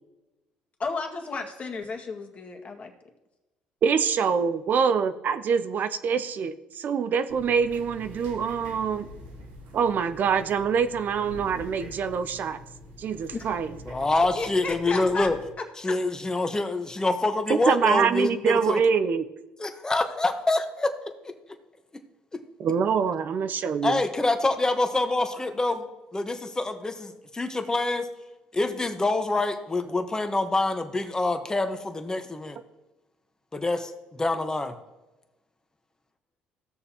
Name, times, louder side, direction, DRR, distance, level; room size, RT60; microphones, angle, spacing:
voice 1, 0.8-2.9 13.3-13.5 14.4-15.3 15.6-16.0, left 4 dB, 35° left, 2 dB, 1.8 m, -33 dB
voice 2, 3.8-9.1 9.7-12.6 13.0-13.7 17.5-19.3 22.6-24.0, right 6 dB, 55° right, 11 dB, 0.5 m, -25 dB
sound 1, 7.3-15.5, left 1 dB, 85° right, 1.8 m, -45 dB
voice 3, 13.9-15.4 15.8-18.8 19.6-21.3 22.3-22.4 23.8-25.9 26.1-28.1 28.5-32.6 33.5-34.7, left 2 dB, 20° left, 7 dB, 1.1 m, -26 dB
16.0 x 6.6 x 2.9 m, 1.1 s
supercardioid pair, 75°, 4 cm